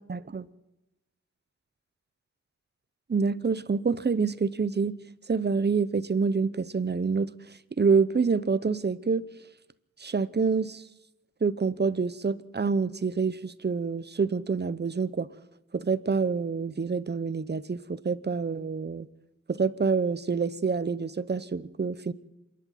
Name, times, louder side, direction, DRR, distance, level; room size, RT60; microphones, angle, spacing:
voice 1, 0.1-0.5 3.1-4.9 5.3-7.3 7.8-9.3 10.0-10.8 11.4-15.3 15.7-19.1 19.5-22.1, right 5 dB, 35° right, 0.9 m, -27 dB
27.0 x 11.0 x 9.4 m
wide cardioid pair, 100°, 30 cm